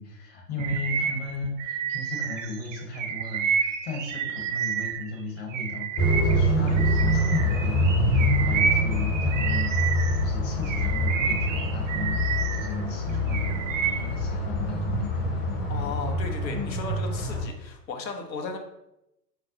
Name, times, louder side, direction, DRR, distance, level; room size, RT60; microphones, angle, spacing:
voice 1, 0.0-15.4, left 3 dB, 40° left, 1 dB, 1.0 m, -36 dB
Bird vocalization bird call bird song, 0.6-5.1 5.5-10.2 10.6-12.7 13.1-14.1, right 7 dB, 55° right, 0.5 m, -30 dB
sound 1, 6.0-17.4, equal, 20° left, 0.5 m, -25 dB
voice 2, 15.7-18.6, left 4 dB, 85° left, 4 dB, 0.8 m, -35 dB
4.3 x 2.0 x 3.7 m, 0.87 s
hypercardioid pair, 110°, 50 cm